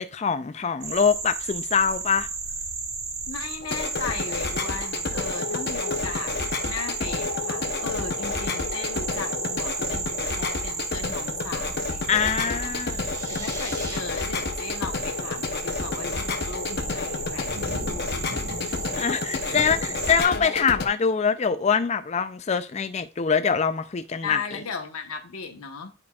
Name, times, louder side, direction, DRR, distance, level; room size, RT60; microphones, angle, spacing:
voice 1, 0.0-2.3 12.1-13.1 19.0-24.6, left 6 dB, 30° left, 0.4 m, -24 dB
sound 1, 0.8-20.2, right 5 dB, 70° right, 1.3 m, -33 dB
voice 2, 3.3-6.4 6.6-12.8 13.3-19.1 19.4-19.6 20.2-20.5 24.2-25.9, left 5 dB, 85° left, 1.1 m, -37 dB
sound 2, 3.6-20.9, left 4 dB, 50° left, 0.8 m, -30 dB
sound 3, 12.7-14.0, right 1 dB, 15° right, 1.9 m, -40 dB
11.0 x 4.3 x 2.3 m
head